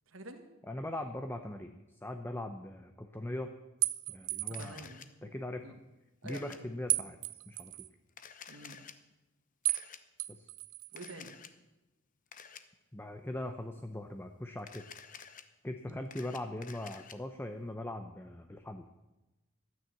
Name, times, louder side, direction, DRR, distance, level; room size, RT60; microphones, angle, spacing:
voice 1, 0.1-0.4 4.6-5.8 6.2-6.4 6.9-7.0 8.5-8.8 10.9-11.3 15.9-16.1, right 2 dB, 70° right, 6 dB, 1.6 m, -48 dB
voice 2, 0.7-3.5 4.1-4.9 5.2-5.7 6.2-7.2 7.5-7.9 10.3-10.5 12.9-14.8 15.6-18.9, left 1 dB, 10° left, 6 dB, 0.6 m, -40 dB
sound 1, 3.8-4.8 6.9-7.9 9.6-9.9 10.2-11.1, right 18 dB, 85° right, 0.5 m, -34 dB
Camera, 4.5-5.1 6.3-6.6 8.1-8.9 9.7-10.0 11.0-11.5 12.3-12.6 14.6-15.4 15.9-17.1, left 7 dB, 40° left, 0.8 m, -50 dB
13.0 x 9.5 x 7.7 m, 1.0 s
head